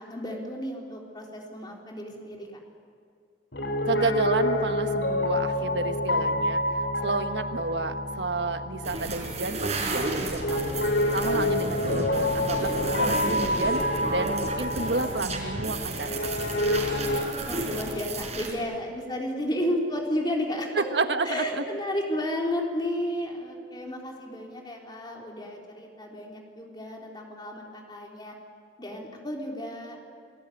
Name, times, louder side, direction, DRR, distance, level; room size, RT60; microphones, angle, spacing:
voice 1, 0.0-2.5 17.4-20.7 21.2-28.4 28.8-30.0, left 1 dB, 25° left, 0 dB, 3.7 m, -32 dB
Piano, 3.5-17.2, left 1 dB, 80° left, 4.1 m, -28 dB
voice 2, 3.8-10.8 11.1-13.8 14.1-16.3 16.7-16.8 20.7-21.6, right 3 dB, 80° right, 8 dB, 1.5 m, -30 dB
sound 1, 8.8-18.5, right 2 dB, 40° right, 5.1 m, -32 dB
28.0 x 20.0 x 9.3 m, 2.3 s
head